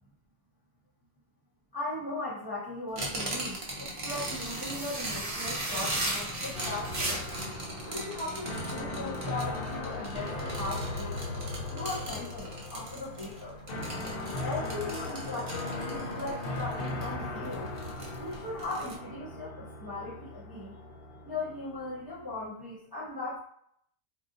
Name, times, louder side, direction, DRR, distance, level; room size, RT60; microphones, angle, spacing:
voice 1, 1.7-7.3 7.8-11.2 11.7-13.6 14.4-17.8 18.2-20.8 21.2-23.4, left 2 dB, 25° left, -9 dB, 0.9 m, -38 dB
sound 1, 3.0-18.9, right 1 dB, 40° right, 0.7 m, -41 dB
sound 2, 3.0-7.5, right 1 dB, 60° right, 1.1 m, -35 dB
sound 3, 6.5-22.5, left 2 dB, 65° left, 0.8 m, -38 dB
2.6 x 2.1 x 3.8 m, 0.68 s
omnidirectional pair, 1.1 m